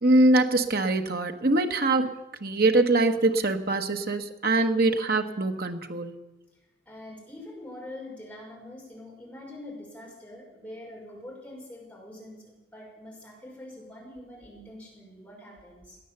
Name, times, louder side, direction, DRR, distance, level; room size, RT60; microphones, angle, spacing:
voice 1, 0.0-6.1, right 2 dB, 55° right, 6 dB, 1.2 m, -23 dB
voice 2, 6.5-16.0, left 1 dB, 10° left, -4 dB, 5.7 m, -44 dB
17.5 x 10.0 x 8.1 m, 1.1 s
head